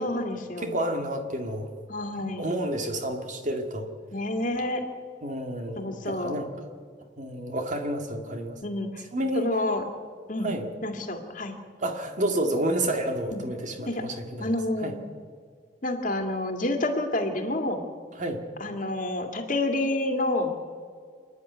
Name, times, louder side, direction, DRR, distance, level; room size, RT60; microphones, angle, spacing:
voice 1, 0.0-0.8 1.9-2.5 4.1-4.9 5.8-6.4 8.6-9.0 9.3-9.8 10.3-10.5 10.8-11.6 13.3-13.4 13.9-14.0 14.4-15.0 15.8-17.8 18.6-20.6, left 1 dB, 45° left, 5 dB, 2.1 m, -29 dB
voice 2, 0.6-1.7 2.4-3.9 5.2-6.5 7.2-8.6 9.1-9.5 10.4-10.7 11.8-14.5 14.8-14.9 18.2-18.4, right 1 dB, 45° right, 5 dB, 2.1 m, -30 dB
27.5 x 10.0 x 9.4 m, 2.1 s
head